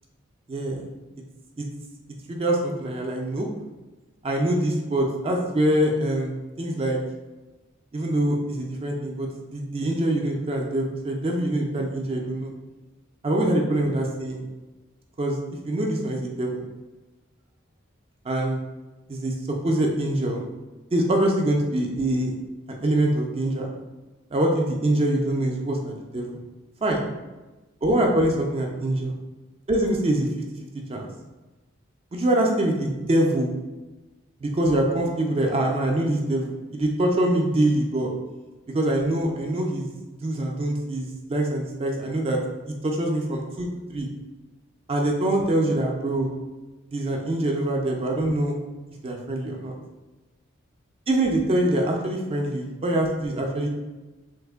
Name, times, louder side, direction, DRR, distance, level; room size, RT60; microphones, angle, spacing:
voice 1, 0.5-0.9 1.6-1.7 2.3-3.5 4.2-7.0 7.9-12.5 13.2-14.4 15.2-15.4 15.6-16.7 18.2-18.6 19.1-19.3 19.6-20.5 20.9-22.4 22.7-23.7 24.3-26.4 26.8-27.1 27.8-29.2 29.7-30.3 30.6-31.1 32.1-33.5 34.4-38.1 38.7-39.9 40.2-42.4 42.8-44.1 44.9-46.3 46.9-48.6 49.0-49.7 51.1-53.7, right 1 dB, 30° right, 1 dB, 0.3 m, -24 dB
3.2 x 2.1 x 3.4 m, 1.1 s
head